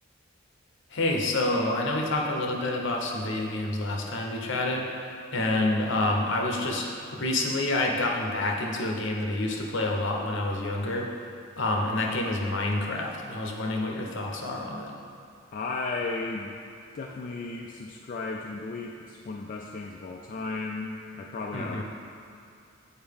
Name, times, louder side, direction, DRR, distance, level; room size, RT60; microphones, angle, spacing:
voice 1, 0.9-4.9 5.3-11.1 11.6-14.9 21.5-21.8, left 2 dB, 65° left, 0 dB, 0.8 m, -28 dB
voice 2, 15.5-16.7 16.9-21.8, left 3 dB, 45° left, -1 dB, 0.3 m, -35 dB
8.7 x 4.3 x 3.6 m, 2.5 s
head